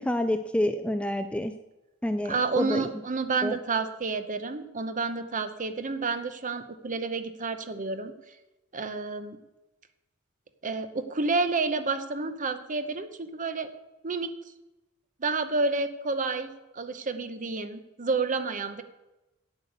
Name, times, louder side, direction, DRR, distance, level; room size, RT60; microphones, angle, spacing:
voice 1, 0.0-1.5 2.0-2.9 3.4-3.6, left 1 dB, 5° left, 9 dB, 0.4 m, -28 dB
voice 2, 2.3-8.4 8.7-9.4 10.6-13.7 14.0-14.3 15.2-18.8, right 3 dB, 35° right, 10 dB, 0.8 m, -30 dB
8.3 x 8.1 x 8.1 m, 1.0 s
head